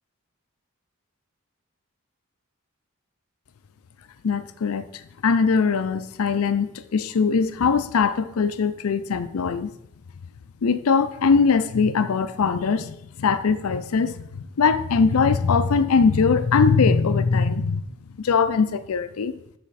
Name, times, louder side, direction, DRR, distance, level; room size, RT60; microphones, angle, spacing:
voice 1, 4.2-9.7 10.6-17.8 18.2-19.3, left 5 dB, 80° left, 12 dB, 0.5 m, -21 dB
11.5 x 4.2 x 4.1 m, 0.78 s
head